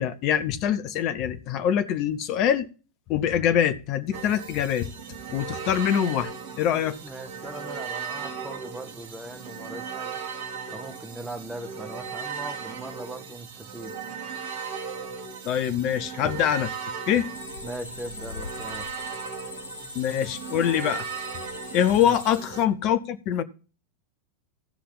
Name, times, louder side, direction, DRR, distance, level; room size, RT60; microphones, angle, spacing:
voice 1, 0.0-2.7 3.1-4.9 5.3-6.3 6.6-7.0 15.4-16.7 17.1-17.3 19.9-21.1 21.7-23.4, left 9 dB, 45° left, 1.2 m, -24 dB
sound 1, 4.1-22.6, right 6 dB, 55° right, 2.4 m, -37 dB
voice 2, 7.0-10.2 10.7-13.9 17.6-18.9 22.0-22.2, right 1 dB, 5° right, 1.9 m, -40 dB
sound 2, 17.3-22.4, left 4 dB, 80° left, 0.7 m, -41 dB
16.5 x 5.7 x 4.1 m
figure-of-eight pair, 85°, 0 cm